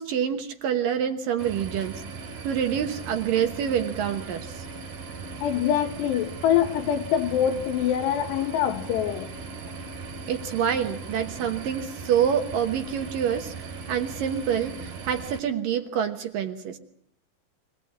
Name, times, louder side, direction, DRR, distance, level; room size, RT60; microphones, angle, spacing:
voice 1, 0.0-2.0 2.4-4.7 10.3-13.5 13.9-16.8, right 8 dB, 65° right, 2.4 m, -27 dB
sound 1, 1.4-15.4, right 4 dB, 50° right, 3.3 m, -38 dB
voice 2, 5.4-9.3, left 10 dB, 80° left, 3.4 m, -24 dB
23.5 x 19.0 x 8.7 m
omnidirectional pair, 4.9 m